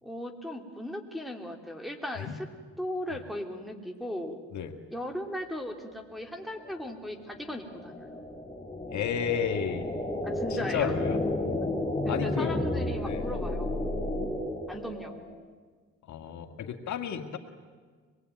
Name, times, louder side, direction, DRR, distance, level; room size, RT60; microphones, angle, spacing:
voice 1, 0.0-2.5 2.8-4.4 4.9-8.2 10.2-10.9 12.0-13.7 14.7-15.3, left 1 dB, ahead, 1 dB, 3.2 m, -37 dB
sound 1, 6.4-15.3, left 1 dB, 20° left, 7.6 m, -32 dB
voice 2, 8.9-9.9 10.5-11.2 12.1-12.5 13.0-13.3 16.1-17.4, left 7 dB, 70° left, 5 dB, 2.0 m, -32 dB
25.5 x 21.0 x 9.3 m, 1.5 s
cardioid pair, 90°, 30 cm